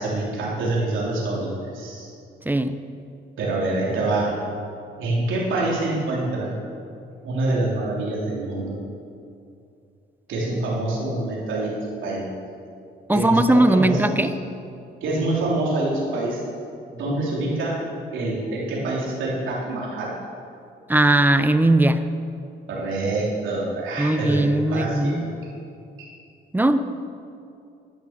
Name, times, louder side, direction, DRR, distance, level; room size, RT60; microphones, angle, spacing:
voice 1, 0.0-2.1 3.4-4.4 5.0-6.5 7.2-8.8 10.3-12.2 13.1-14.3 15.0-16.4 16.9-17.8 18.1-20.1 22.7-25.2, right 2 dB, 80° right, -5 dB, 3.4 m, -26 dB
voice 2, 2.5-2.8 13.1-14.3 20.9-22.0 24.0-25.2 26.5-26.8, right 1 dB, 10° right, 10 dB, 0.7 m, -19 dB
11.0 x 10.5 x 7.4 m, 2.5 s
cardioid pair, 90°, 20 cm